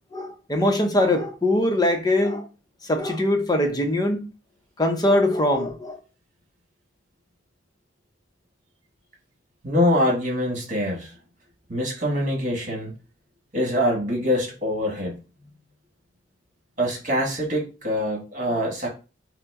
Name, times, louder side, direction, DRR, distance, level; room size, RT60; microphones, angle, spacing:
voice 1, 0.1-2.5 2.9-4.2 4.8-6.0, left 1 dB, 20° left, 0.7 m, -22 dB
voice 2, 9.6-11.1 11.7-12.9 13.5-15.2 16.8-18.9, left 1 dB, 40° right, 1.6 m, -24 dB
5.5 x 2.1 x 3.5 m
head